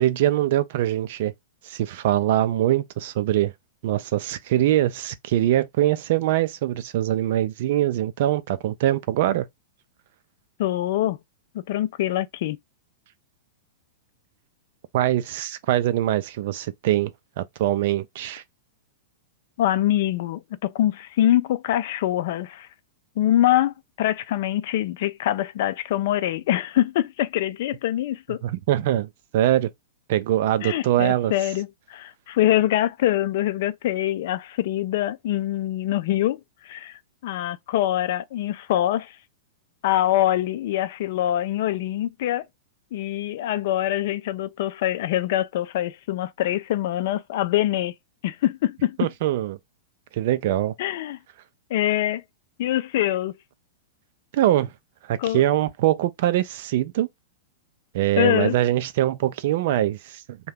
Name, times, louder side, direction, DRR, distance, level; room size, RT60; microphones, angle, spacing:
voice 1, 0.0-1.3 1.6-3.5 3.8-9.5 14.9-17.1 17.4-18.4 28.4-29.7 30.1-31.3 49.0-49.6 50.1-50.7 54.3-54.7 55.0-57.1 57.9-60.4, right 13 dB, 60° right, 0.4 m, -23 dB
voice 2, 10.6-11.2 11.5-12.6 19.6-22.7 23.2-28.4 30.6-39.2 39.8-42.5 42.9-47.9 48.2-49.0 50.8-51.2 51.7-52.2 52.6-53.4 55.2-55.4 58.2-58.6, left 13 dB, 60° left, 0.4 m, -24 dB
2.7 x 2.2 x 3.4 m
hypercardioid pair, 110°, 0 cm